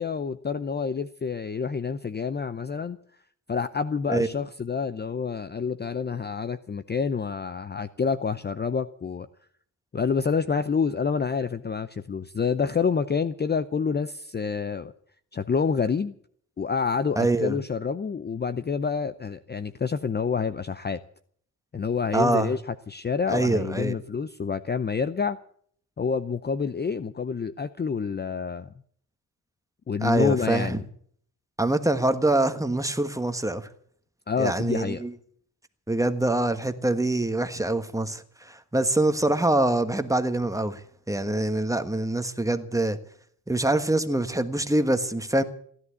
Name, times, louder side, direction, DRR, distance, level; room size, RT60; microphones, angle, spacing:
voice 1, 0.0-3.0 3.5-9.3 9.9-14.9 15.3-16.1 16.6-21.0 21.7-25.4 26.0-28.7 29.9-30.8 34.3-35.0, left 5 dB, 25° left, 0.6 m, -28 dB
voice 2, 17.2-17.5 22.1-22.5 23.3-24.0 30.0-30.8 31.6-33.7 34.4-35.1 35.9-40.8 41.1-43.0 43.5-45.4, right 2 dB, 10° right, 1.4 m, -24 dB
16.0 x 11.0 x 8.2 m
cardioid pair, 85°, 39 cm